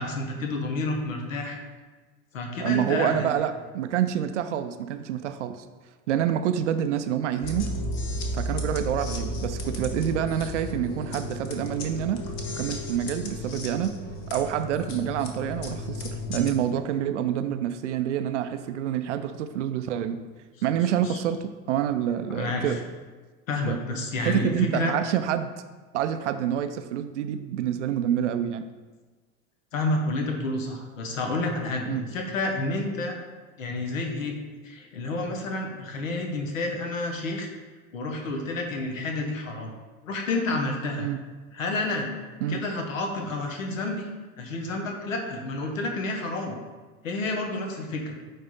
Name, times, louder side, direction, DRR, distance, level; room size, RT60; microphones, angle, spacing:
voice 1, 0.0-1.6 2.3-3.3 21.0-21.2 22.3-22.8 23.5-25.0 29.7-33.2 33.6-34.4 34.6-37.5 37.9-39.7 40.0-41.1 41.5-42.1 42.5-44.1 44.4-46.6 47.0-48.1, left 2 dB, 65° left, 3 dB, 1.2 m, -29 dB
voice 2, 2.6-5.6 6.1-7.7 8.3-12.2 12.5-14.0 14.3-16.0 16.3-20.2 20.6-22.8 23.7-23.8 24.2-25.5 25.9-28.7 31.9-32.0 41.0-41.2 42.4-42.6, right 10 dB, 55° right, 9 dB, 0.6 m, -27 dB
sound 1, 7.4-16.5, left 1 dB, 40° left, 1.1 m, -33 dB
8.9 x 3.4 x 4.1 m, 1.3 s
figure-of-eight pair, 80°, 42 cm